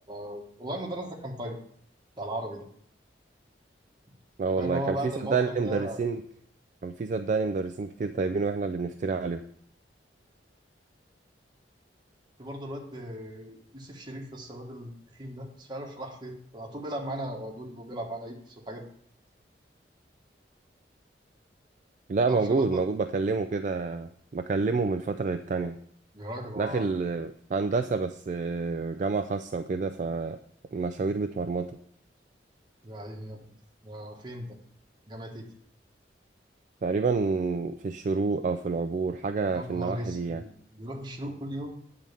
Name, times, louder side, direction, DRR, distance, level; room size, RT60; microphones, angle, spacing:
voice 1, 0.1-1.6 2.2-2.6 4.6-6.0 12.4-14.9 15.2-18.8 22.3-22.8 26.1-26.9 32.8-33.4 33.8-34.6 35.1-35.5 39.5-41.8, right 1 dB, 25° right, 0 dB, 1.3 m, -37 dB
voice 2, 4.4-6.2 6.8-9.4 22.1-25.8 26.6-30.4 30.7-31.7 36.8-40.4, right 4 dB, 45° right, 8 dB, 0.3 m, -28 dB
8.9 x 3.8 x 6.7 m, 0.63 s
head